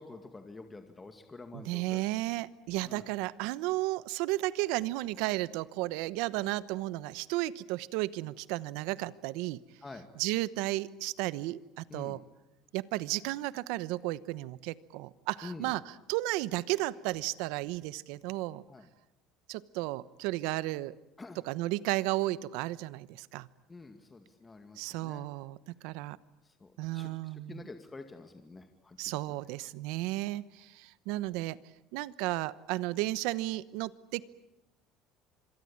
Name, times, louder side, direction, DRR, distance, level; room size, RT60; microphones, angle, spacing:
voice 1, 0.0-2.0 2.8-3.1 9.8-10.0 11.9-12.2 15.4-15.7 18.7-18.8 21.2-21.4 23.7-25.2 26.6-27.1 27.5-29.2, left 3 dB, 15° left, 6 dB, 2.2 m, -47 dB
voice 2, 1.5-9.6 10.1-12.2 12.7-18.6 19.5-20.9 21.3-23.5 24.8-26.2 26.8-27.7 29.0-31.6 31.9-34.2, right 18 dB, 80° right, 18 dB, 1.0 m, -33 dB
26.0 x 23.0 x 8.8 m, 0.92 s
cardioid pair, 115°, 0 cm